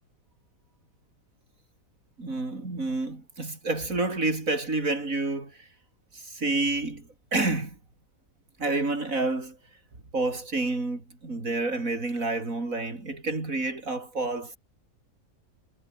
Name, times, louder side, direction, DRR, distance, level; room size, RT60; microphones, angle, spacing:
voice 1, 2.2-5.5 6.1-7.8 8.6-9.6 10.1-14.6, right 2 dB, 55° right, 5.1 m, -29 dB
omnidirectional pair, 1.7 m